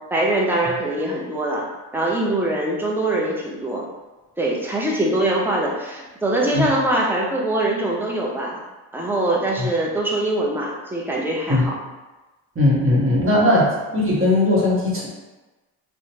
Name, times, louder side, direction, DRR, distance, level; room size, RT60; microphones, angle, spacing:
voice 1, 0.1-1.7 1.9-3.8 4.4-8.6 8.9-11.8, right 1 dB, 5° right, -3 dB, 0.6 m, -23 dB
voice 2, 12.5-13.7 13.9-15.1, left 1 dB, 25° right, -5 dB, 1.1 m, -18 dB
2.8 x 2.2 x 2.8 m, 1.1 s
hypercardioid pair, 55°, 48 cm